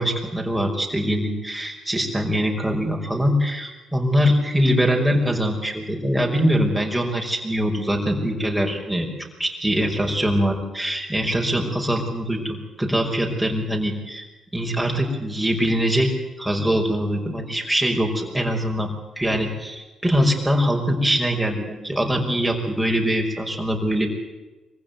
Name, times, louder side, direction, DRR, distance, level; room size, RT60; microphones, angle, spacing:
voice 1, 0.0-9.1 9.4-14.2 14.5-16.1 16.4-18.9 19.2-24.1, equal, 5° right, 0 dB, 5.5 m, -23 dB
24.0 x 15.5 x 9.5 m, 1.1 s
cardioid pair, 90°, 0 cm